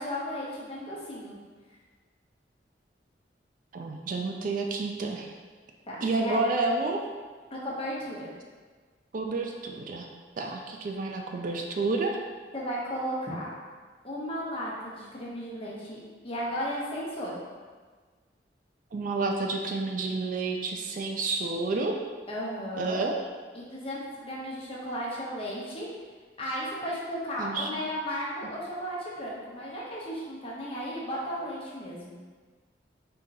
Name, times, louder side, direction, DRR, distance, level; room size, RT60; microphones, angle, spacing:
voice 1, 0.0-1.4 5.9-6.4 7.5-8.3 12.5-13.5 14.0-16.0 16.2-17.4 22.3-23.0 23.5-25.9 26.4-32.2, equal, 30° left, -5 dB, 0.9 m, -35 dB
voice 2, 3.7-5.3 6.0-7.0 9.1-10.1 10.4-12.2 18.9-22.0 22.8-23.1 27.4-27.8, right 3 dB, 50° right, 2 dB, 0.4 m, -30 dB
3.7 x 2.8 x 4.0 m, 1.5 s
head